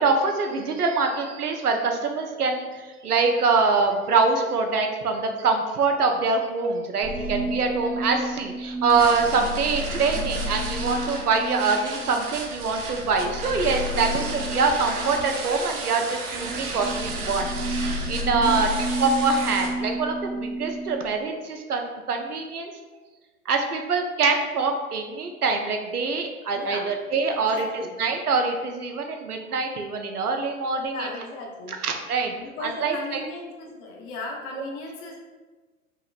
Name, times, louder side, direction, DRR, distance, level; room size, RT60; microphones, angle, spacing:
voice 1, 0.0-17.5 17.8-18.7 19.0-22.7 23.5-31.1 31.7-32.3 32.6-33.2, right 4 dB, 80° right, 4 dB, 0.7 m, -24 dB
sound 1, 7.0-15.8 16.3-21.0, equal, ahead, 0.7 m, -31 dB
sound 2, 8.9-19.7, right 4 dB, 35° right, 0.7 m, -34 dB
voice 2, 18.4-19.0 26.5-26.9 27.4-27.9 30.8-31.8 32.4-35.2, left 3 dB, 35° left, 0 dB, 0.8 m, -37 dB
5.6 x 2.9 x 2.5 m, 1.3 s
figure-of-eight pair, 95°, 44 cm